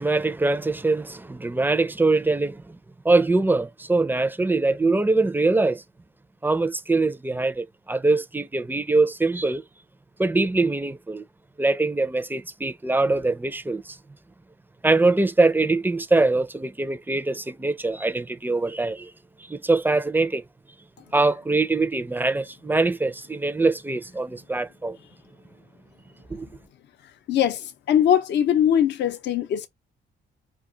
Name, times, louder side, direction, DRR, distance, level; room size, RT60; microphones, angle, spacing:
voice 1, 0.0-2.8 3.0-5.8 6.4-9.6 10.2-11.2 11.6-14.0 14.8-19.1 19.5-20.4 21.1-25.0 26.3-26.5, right 3 dB, 10° right, 0.4 m, -23 dB
voice 2, 27.3-29.7, left 9 dB, 60° left, 0.5 m, -21 dB
2.4 x 2.3 x 3.8 m
cardioid pair, 90°, 20 cm